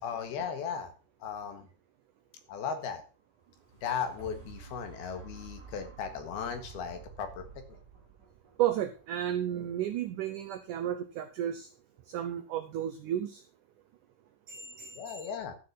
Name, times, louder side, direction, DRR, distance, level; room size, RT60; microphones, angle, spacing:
voice 1, 0.0-0.9 1.2-1.7 2.5-3.0 3.8-7.8 15.0-15.5, left 7 dB, 70° left, 7 dB, 3.4 m, -36 dB
sound 1, 3.4-11.5 12.0-12.1, right 6 dB, 25° right, 4.2 m, -51 dB
voice 2, 8.6-11.7 12.1-13.4 14.5-15.3, right 11 dB, 80° right, 7 dB, 1.8 m, -33 dB
12.5 x 6.5 x 5.7 m, 0.35 s
omnidirectional pair, 4.7 m